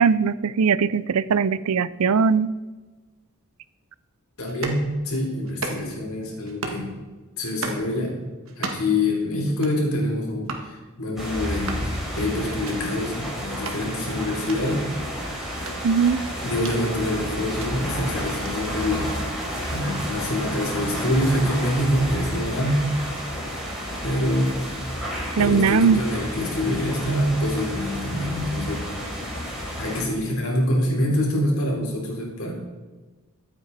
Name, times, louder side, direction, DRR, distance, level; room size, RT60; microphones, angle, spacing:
voice 1, 0.0-2.5 15.8-16.2 25.4-26.0, right 5 dB, 80° right, 17 dB, 0.5 m, -20 dB
voice 2, 4.4-6.9 7.4-8.1 8.6-11.8 12.2-14.9 16.4-19.1 19.7-22.9 24.0-24.5 25.4-28.8 29.8-32.5, left 1 dB, 70° left, -1 dB, 4.0 m, -25 dB
sound 1, 4.5-4.8 5.5-6.0 6.5-6.9 7.4-7.9 8.5-9.0 9.5-9.8 10.4-10.7 11.5-11.9 12.5-12.8 13.5-13.8 14.4-14.6 15.5-16.8 17.4-17.7 18.4-18.6, right 3 dB, 65° right, 1.8 m, -34 dB
sound 2, 11.2-30.0, equal, ahead, 5.3 m, -31 dB
23.0 x 9.1 x 4.1 m, 1.3 s
head